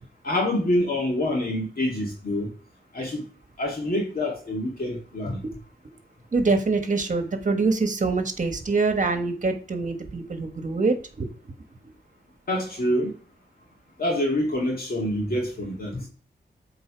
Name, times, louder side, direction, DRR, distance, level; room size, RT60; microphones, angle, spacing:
voice 1, 0.2-2.5 2.9-3.3 3.6-5.4 12.5-13.2 14.0-16.0, left 1 dB, 55° left, -2 dB, 2.1 m, -26 dB
voice 2, 6.3-11.5, right 3 dB, 45° right, 6 dB, 1.3 m, -25 dB
7.9 x 3.9 x 5.0 m, 0.40 s
wide cardioid pair, 85°, 18 cm